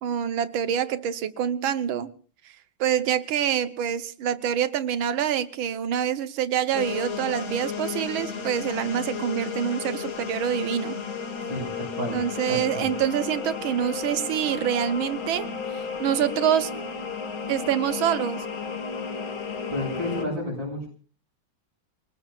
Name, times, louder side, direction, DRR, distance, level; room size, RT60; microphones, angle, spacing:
voice 1, 0.0-2.1 2.8-11.0 12.1-16.8 17.5-18.5, right 9 dB, 85° right, 1.8 m, -26 dB
sound 1, 6.7-20.2, left 5 dB, 80° left, 2.9 m, -33 dB
voice 2, 11.5-12.2 12.5-12.9 19.7-20.9, left 1 dB, 65° right, 7.2 m, -31 dB
29.0 x 19.5 x 2.4 m
omnidirectional pair, 2.2 m